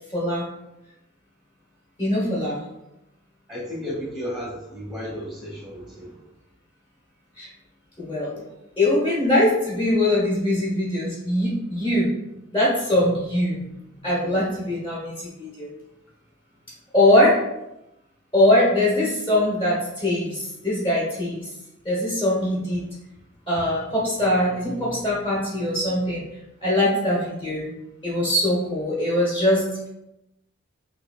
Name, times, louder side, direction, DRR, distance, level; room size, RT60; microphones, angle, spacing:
voice 1, 0.1-0.4 2.0-2.6 7.4-7.5 8.0-8.4 8.8-12.1 12.5-13.6 14.0-15.7 16.9-17.4 18.3-21.5 21.8-22.9 23.5-26.2 26.6-27.7 28.0-29.9, left 1 dB, 25° left, -6 dB, 1.2 m, -22 dB
voice 2, 3.5-6.1, equal, ahead, -4 dB, 0.8 m, -33 dB
4.2 x 2.8 x 2.4 m, 0.89 s
head